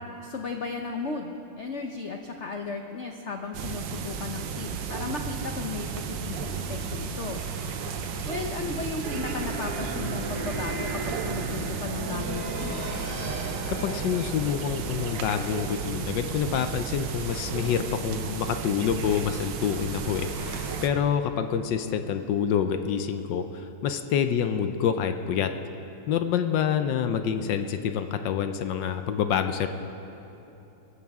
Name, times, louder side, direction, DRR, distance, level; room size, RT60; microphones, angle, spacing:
voice 1, 0.2-7.4 8.3-12.9, left 4 dB, 90° left, 4 dB, 0.6 m, -35 dB
sound 1, 3.5-20.9, right 6 dB, 65° right, 1.4 m, -34 dB
sound 2, 6.3-20.7, equal, 20° right, 3.7 m, -45 dB
sound 3, 9.0-15.8, right 2 dB, 85° right, 2.4 m, -35 dB
voice 2, 13.7-25.6 26.1-29.7, left 8 dB, 70° left, 8 dB, 1.1 m, -27 dB
23.5 x 14.5 x 3.6 m, 3.0 s
omnidirectional pair, 2.4 m